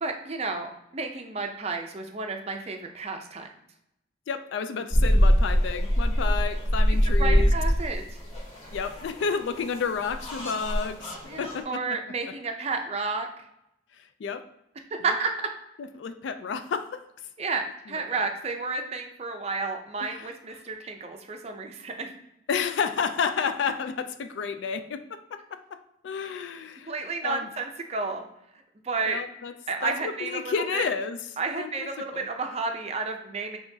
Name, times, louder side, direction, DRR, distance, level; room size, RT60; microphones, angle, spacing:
voice 1, 0.0-3.5 7.2-8.0 11.3-13.3 15.0-15.3 17.4-22.1 26.9-28.2 28.8-29.2 29.7-30.8 31.4-33.6, right 4 dB, 30° right, 4 dB, 0.5 m, -31 dB
voice 2, 4.3-7.5 8.7-11.8 14.0-14.5 15.8-17.0 17.9-18.3 20.0-20.3 22.5-26.9 27.2-27.5 29.1-29.5 29.8-31.2 31.6-32.3, left 6 dB, 65° left, 10 dB, 0.3 m, -31 dB
sound 1, 4.9-11.6, equal, 30° left, 1.3 m, -23 dB
5.8 x 2.9 x 2.7 m, 0.83 s
head